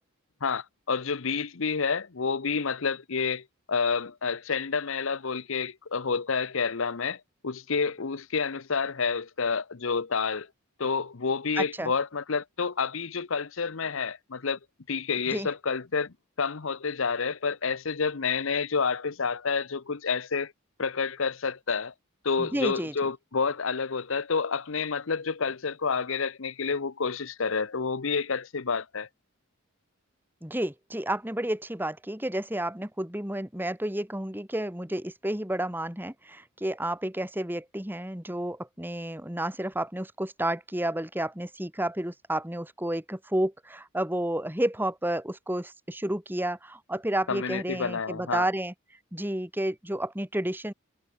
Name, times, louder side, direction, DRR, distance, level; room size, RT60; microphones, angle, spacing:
voice 1, 0.4-10.5 10.8-14.6 14.9-20.5 20.8-21.9 22.2-29.1 47.3-48.5, left 5 dB, 65° left, 0.8 m, -29 dB
voice 2, 11.6-11.9 15.3-15.5 22.4-22.9 30.4-48.7 49.1-50.7, right 1 dB, 10° right, 2.0 m, -31 dB
head